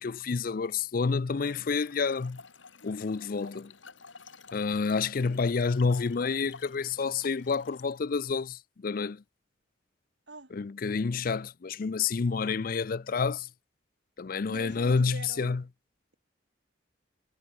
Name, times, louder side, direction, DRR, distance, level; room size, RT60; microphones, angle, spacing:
voice 1, 0.0-2.4 2.8-3.7 4.5-9.2 10.5-13.5 14.2-15.6, left 5 dB, 45° left, 0.4 m, -29 dB
Trickle dribble / Fill (with liquid), 1.3-8.0, left 4 dB, 80° left, 4.0 m, -52 dB
voice 2, 14.5-15.6, right 2 dB, 65° right, 3.9 m, -44 dB
head